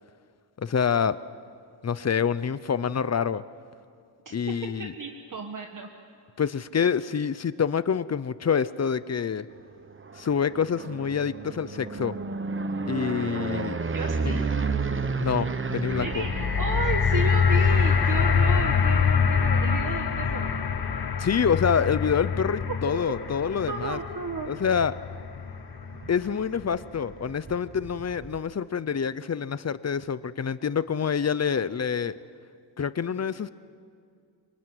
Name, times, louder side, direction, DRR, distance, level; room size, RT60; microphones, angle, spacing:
voice 1, 0.6-1.2 1.8-3.4 4.3-4.9 6.4-9.5 10.1-12.2 12.9-13.8 14.2-14.5 15.2-16.2 21.2-24.0 24.5-25.0 26.1-32.1 32.8-33.5, left 7 dB, 35° left, 16 dB, 0.6 m, -27 dB
voice 2, 4.8-5.9 13.9-14.4 16.0-20.5 23.7-24.5, right 4 dB, 45° right, 3 dB, 1.4 m, -33 dB
sound 1, 9.8-23.8 24.2-24.7 24.9-25.0 25.3-28.4, right 4 dB, 30° right, 1.0 m, -34 dB
sound 2, 15.8-26.1 26.8-26.9, left 6 dB, 60° left, 1.3 m, -25 dB
25.0 x 24.5 x 9.6 m, 2.3 s
wide cardioid pair, 175°, 43 cm